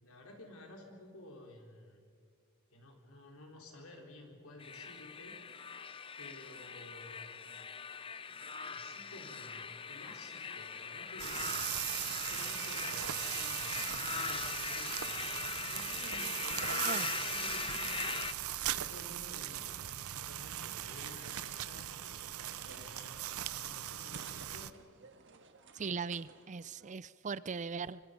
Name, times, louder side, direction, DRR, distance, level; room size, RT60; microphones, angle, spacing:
voice 1, 0.0-2.0 2.7-5.7 6.2-7.4 8.7-18.3 18.7-19.8 20.3-24.7, left 1 dB, 75° left, 1 dB, 4.3 m, -53 dB
sound 1, 4.6-18.3, left 6 dB, 25° left, 0.6 m, -41 dB
sound 2, 11.2-24.7, right 12 dB, 80° right, 0.7 m, -39 dB
sound 3, 21.9-26.9, right 6 dB, 60° right, 1.6 m, -56 dB
voice 2, 25.7-28.0, right 5 dB, 35° right, 17 dB, 0.5 m, -39 dB
26.0 x 25.0 x 5.3 m, 2.3 s
head